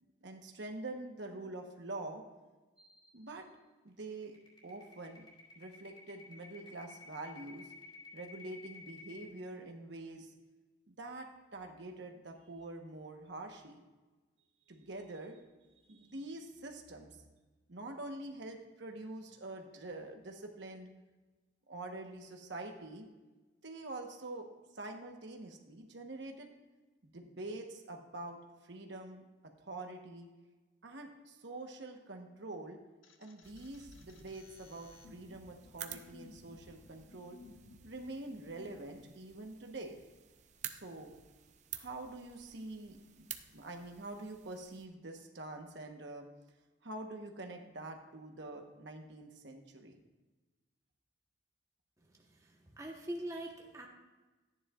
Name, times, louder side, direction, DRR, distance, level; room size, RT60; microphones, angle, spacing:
voice 1, 0.2-2.2 3.1-3.5 3.8-4.4 4.6-5.3 5.6-7.7 8.1-10.3 10.9-13.8 14.7-15.4 15.9-17.2 17.7-20.9 21.7-23.1 23.6-24.5 24.7-26.5 27.0-29.2 29.6-30.3 30.8-32.8 33.2-37.4 37.8-40.0 40.7-41.1 41.7-43.3 43.5-46.3 46.8-50.0, right 2 dB, 65° right, 3 dB, 1.1 m, -46 dB
sound 1, 2.8-3.2 3.5-3.6 4.0-9.3, left 4 dB, 30° left, 3.6 m, -53 dB
sound 2, 33.0-38.8, left 3 dB, 85° left, 1.0 m, -58 dB
sound 3, 33.4-44.9, right 10 dB, 35° right, 0.6 m, -52 dB
voice 2, 52.8-53.9, right 1 dB, 15° right, 0 dB, 1.1 m, -42 dB
14.0 x 9.8 x 2.4 m, 1.2 s
head